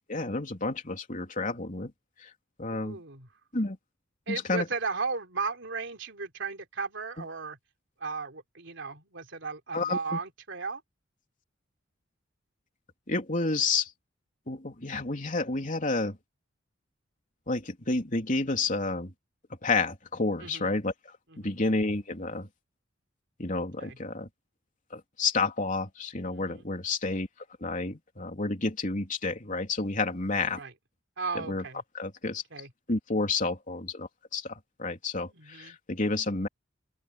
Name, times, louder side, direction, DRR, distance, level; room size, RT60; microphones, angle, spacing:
voice 1, 0.1-1.9 2.6-3.0 3.5-3.8 4.3-4.7 9.7-10.2 13.1-13.9 14.5-16.2 17.5-19.1 19.6-20.9 21.4-22.5 23.4-24.3 24.9-27.3 27.6-30.6 31.4-31.6 32.0-32.4 32.9-36.5, left 3 dB, 40° left, 3.4 m, -30 dB
voice 2, 2.7-3.3 4.3-7.6 8.0-10.8 20.4-20.7 21.3-21.6 23.8-24.0 26.3-26.7 30.4-30.7 31.2-31.8 32.5-32.7 35.3-35.8, right 4 dB, 65° right, 3.7 m, -36 dB
open air
head